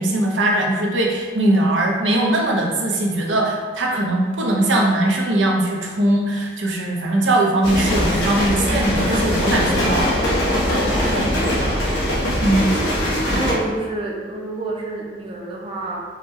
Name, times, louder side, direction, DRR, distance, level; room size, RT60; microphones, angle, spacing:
voice 1, 0.0-10.2 12.4-12.7, right 1 dB, 90° right, -1 dB, 0.8 m, -20 dB
freight train pass fast short heavy rail track clacks, 7.6-13.5, equal, 70° left, 1.2 m, -21 dB
voice 2, 10.9-11.9 13.3-16.0, right 2 dB, 30° right, -2 dB, 0.6 m, -29 dB
4.8 x 2.2 x 4.5 m, 1.5 s
head